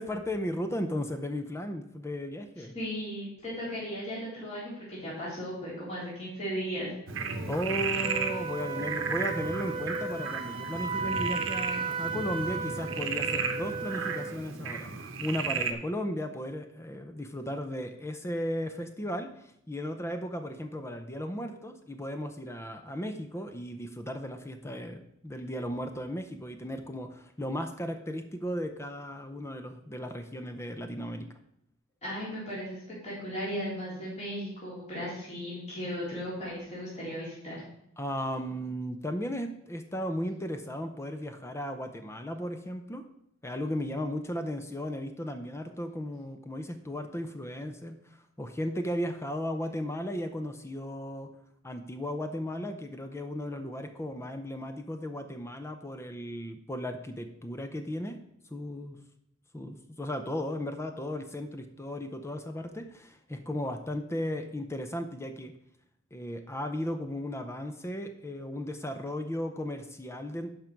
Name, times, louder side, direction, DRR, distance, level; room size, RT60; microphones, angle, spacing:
voice 1, 0.0-2.7 7.5-31.3 38.0-43.1 43.4-51.3 51.6-58.2 58.5-59.0 59.5-65.5 66.1-70.5, equal, 15° left, 7 dB, 0.6 m, -35 dB
voice 2, 2.7-6.9 32.0-32.8 33.0-37.6, equal, 35° left, -8 dB, 3.5 m, -36 dB
Frog, 7.1-15.7, right 5 dB, 70° right, 0.9 m, -34 dB
Wind instrument woodwind instrument, 8.0-14.4, right 4 dB, 25° right, 0.8 m, -35 dB
11.5 x 5.2 x 4.6 m, 0.76 s
head